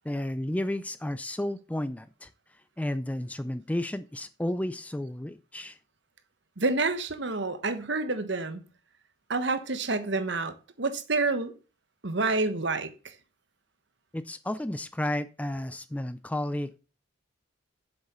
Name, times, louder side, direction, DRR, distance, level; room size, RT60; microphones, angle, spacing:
voice 1, 0.0-2.3 2.8-5.8 14.1-16.8, left 1 dB, 5° left, 0.4 m, -32 dB
voice 2, 6.6-8.6 9.3-11.5 12.0-13.1, right 3 dB, 60° right, 1.2 m, -28 dB
7.9 x 7.1 x 6.7 m
head